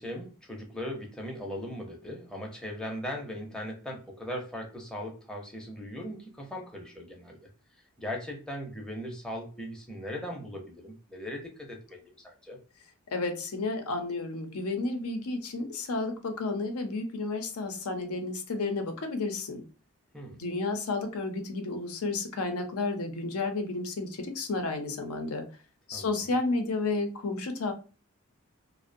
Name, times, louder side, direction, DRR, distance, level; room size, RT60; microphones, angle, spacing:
voice 1, 0.0-7.4 8.0-12.6 20.1-20.4 25.9-26.3, equal, 5° left, 0 dB, 0.5 m, -39 dB
voice 2, 13.1-19.6 20.3-25.4 25.9-27.7, left 3 dB, 85° left, 6 dB, 0.5 m, -32 dB
2.5 x 2.0 x 2.5 m, 0.35 s
head